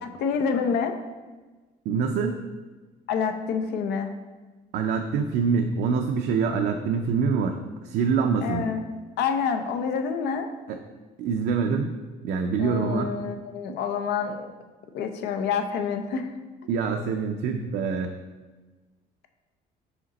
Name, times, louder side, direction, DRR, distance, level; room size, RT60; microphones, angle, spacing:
voice 1, 0.0-0.9 3.1-4.1 8.4-8.8 9.2-10.5 12.6-14.5 14.9-16.3, left 6 dB, 80° left, 7 dB, 0.6 m, -27 dB
voice 2, 1.9-2.4 4.7-7.6 7.8-8.7 10.7-10.8 11.2-11.9 12.2-13.2 16.7-18.2, right 5 dB, 75° right, 4 dB, 0.5 m, -25 dB
5.1 x 5.0 x 4.0 m, 1.3 s
cardioid pair, 110°, 17 cm